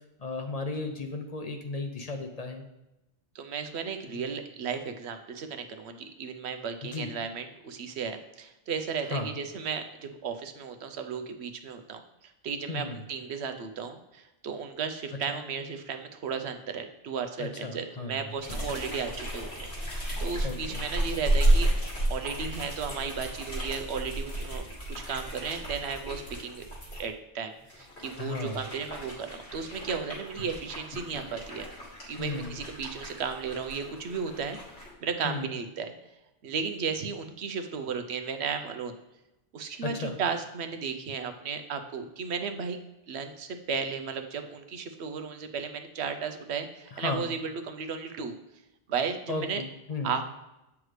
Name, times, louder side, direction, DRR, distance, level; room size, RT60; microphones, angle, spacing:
voice 1, 0.2-2.6 4.1-4.3 6.8-7.1 9.1-9.3 12.7-13.0 17.4-18.3 20.4-20.8 28.2-28.6 32.2-32.5 35.2-35.5 39.8-40.2 46.9-47.2 49.3-50.2, left 3 dB, 45° left, 4 dB, 0.6 m, -35 dB
voice 2, 3.3-21.7 22.1-26.6 27.0-31.7 32.1-34.6 35.0-35.9 36.4-38.9 39.5-42.8 43.1-48.3 48.9-49.6 50.0-50.2, right 6 dB, 85° right, 7 dB, 1.0 m, -34 dB
sound 1, 18.4-27.0 27.6-34.9, right 1 dB, 80° left, 2.3 m, -32 dB
7.9 x 5.8 x 3.2 m, 0.93 s
omnidirectional pair, 1.1 m